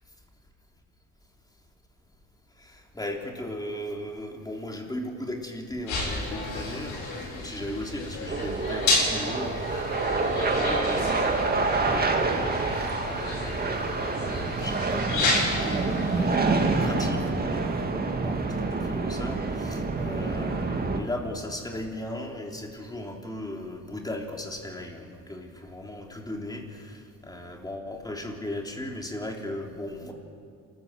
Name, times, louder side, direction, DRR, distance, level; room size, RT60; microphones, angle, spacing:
voice 1, 2.6-30.1, left 1 dB, 15° left, 1 dB, 3.5 m, -37 dB
sound 1, 5.9-16.8, left 2 dB, 85° left, 7.9 m, -31 dB
sound 2, 8.3-21.0, right 3 dB, 30° right, 2.1 m, -27 dB
28.0 x 14.0 x 7.7 m, 2.3 s
cardioid pair, 90°, 30 cm